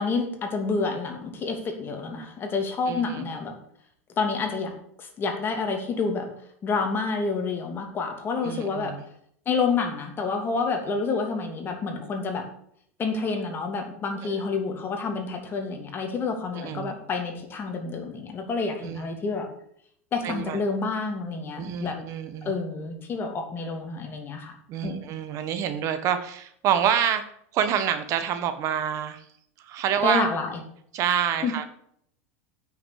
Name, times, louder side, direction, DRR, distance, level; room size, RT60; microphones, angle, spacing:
voice 1, 0.0-3.6 4.2-6.3 6.6-8.9 9.4-12.5 13.0-19.5 20.1-22.0 22.4-24.6 24.8-25.0 30.0-30.6 31.1-31.5, left 4 dB, 30° left, 3 dB, 2.9 m, -29 dB
voice 2, 2.9-3.2 8.4-9.0 14.2-14.4 16.5-16.9 18.8-19.0 20.2-20.6 21.6-22.5 24.7-27.2 27.5-29.3 29.6-30.3 30.9-31.6, right 9 dB, 45° right, 9 dB, 1.4 m, -27 dB
8.4 x 6.7 x 8.3 m, 0.68 s
supercardioid pair, 115°, 7 cm